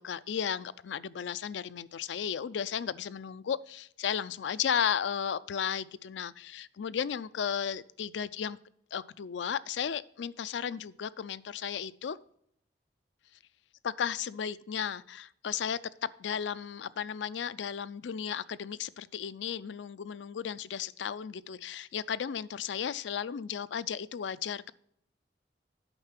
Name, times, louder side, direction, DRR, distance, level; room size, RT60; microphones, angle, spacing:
voice 1, 0.0-8.6 8.9-12.2 13.8-24.7, left 8 dB, 90° left, 0.4 m, -34 dB
8.9 x 5.7 x 5.8 m
head